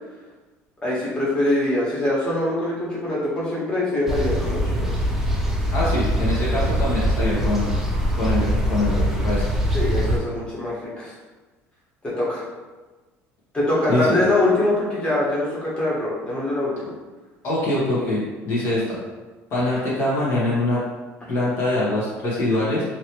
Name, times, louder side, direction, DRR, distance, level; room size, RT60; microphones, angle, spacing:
voice 1, 0.8-4.9 6.4-6.5 9.7-11.1 12.0-12.4 13.5-16.9, left 1 dB, 15° left, -8 dB, 1.3 m, -23 dB
sound 1, 4.1-10.2, equal, 5° right, 0.6 m, -23 dB
voice 2, 5.7-7.8 8.1-9.4 13.9-14.2 17.4-19.0 19.5-20.8 21.3-22.8, left 2 dB, 50° left, -7 dB, 1.1 m, -23 dB
2.9 x 2.8 x 3.0 m, 1.2 s
supercardioid pair, 100°, 6 cm